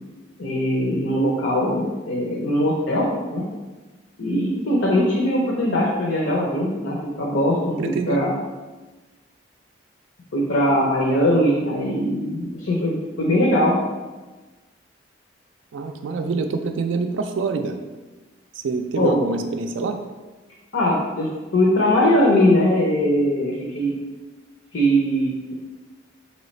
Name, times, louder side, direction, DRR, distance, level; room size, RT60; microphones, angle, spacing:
voice 1, 0.4-3.4 4.2-8.3 10.3-13.8 19.0-19.2 20.7-23.9 24.7-25.5, equal, 80° left, -3 dB, 0.6 m, -21 dB
voice 2, 7.5-8.3 15.7-17.8 18.5-20.0, right 4 dB, 80° right, 5 dB, 0.3 m, -26 dB
3.2 x 3.1 x 4.2 m, 1.2 s
head